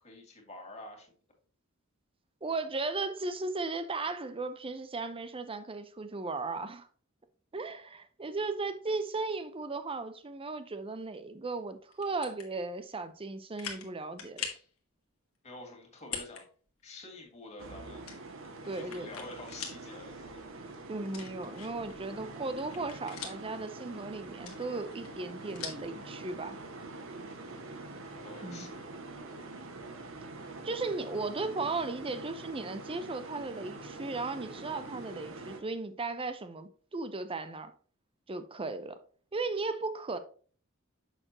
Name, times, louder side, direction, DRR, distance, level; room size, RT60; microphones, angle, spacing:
voice 1, 0.0-1.1 15.4-16.5 16.8-18.0 18.7-20.5 28.2-28.9, left 2 dB, 30° left, 2.2 m, -48 dB
voice 2, 2.4-6.9 7.5-14.5 18.7-19.1 20.9-26.6 28.4-28.7 30.6-37.7 38.3-39.0 39.3-40.2, right 3 dB, 25° right, 0.6 m, -36 dB
sound 1, 11.9-12.5 13.0-13.1 13.6-13.9 14.2-14.7 16.0-16.4 16.8-16.9 18.1-19.8 20.2-20.3 21.1-21.9 22.3-23.6 24.3-25.9, left 7 dB, 85° left, 1.5 m, -42 dB
sound 2, 17.6-35.6, right 3 dB, 65° right, 1.1 m, -45 dB
6.6 x 6.2 x 2.9 m
head